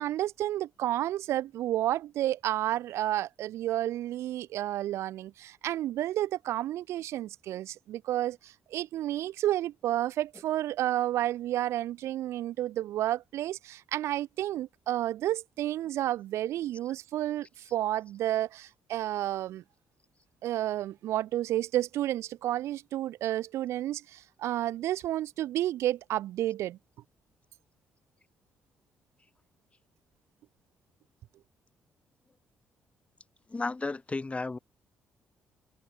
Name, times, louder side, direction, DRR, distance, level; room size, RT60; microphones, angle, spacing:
voice 1, 0.0-19.6 20.4-26.8, right 13 dB, 70° right, 0.6 m, -31 dB
voice 2, 33.5-34.6, left 3 dB, 25° left, 1.4 m, -33 dB
hypercardioid pair, 45°, 5 cm